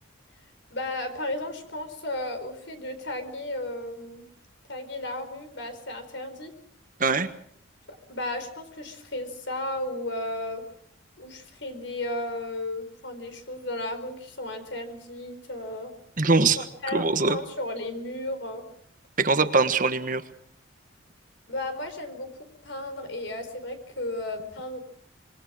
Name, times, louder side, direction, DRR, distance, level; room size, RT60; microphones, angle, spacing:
voice 1, 0.7-4.3 4.7-6.5 7.9-10.6 11.2-15.9 16.5-18.7 21.5-24.8, left 1 dB, 60° left, 8 dB, 4.7 m, -34 dB
voice 2, 16.2-16.6 16.9-17.4 19.2-20.2, right 3 dB, 40° right, 10 dB, 1.4 m, -22 dB
26.5 x 22.5 x 6.4 m, 0.66 s
head